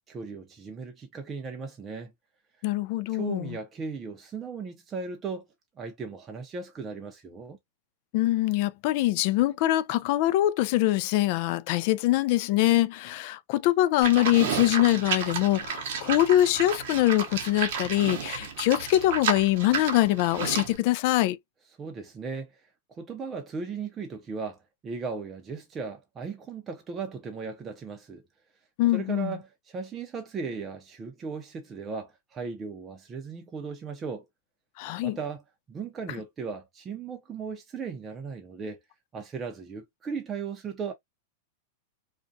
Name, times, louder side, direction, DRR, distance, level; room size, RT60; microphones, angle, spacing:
voice 1, 0.1-2.1 3.1-5.5 5.8-7.6 21.8-22.6 22.9-28.2 28.9-34.3 35.0-35.4 35.7-38.8 39.1-40.9, right 5 dB, 20° right, 0.5 m, -37 dB
voice 2, 2.6-3.6 8.1-21.4 28.8-29.4 34.8-35.2, left 15 dB, 50° left, 0.3 m, -24 dB
Livestock farm animals working animals, 14.0-20.8, right 6 dB, 65° right, 0.7 m, -32 dB
2.4 x 2.1 x 2.5 m
supercardioid pair, 140°, 0 cm